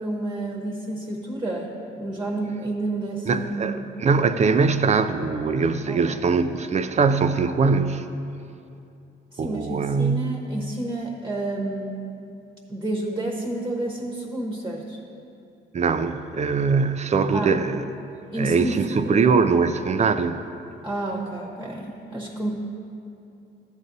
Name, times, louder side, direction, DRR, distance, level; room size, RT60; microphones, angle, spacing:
voice 1, 0.0-1.7 2.0-4.0 5.9-6.2 9.3-11.9 12.7-15.0 17.3-17.6 18.3-19.4 20.8-22.6, right 1 dB, 15° right, 0 dB, 1.0 m, -30 dB
voice 2, 3.3-8.1 9.4-10.4 15.7-17.8 18.4-20.4, right 5 dB, 35° right, 10 dB, 0.4 m, -22 dB
12.5 x 8.1 x 2.6 m, 2.7 s
cardioid pair, 90°, 20 cm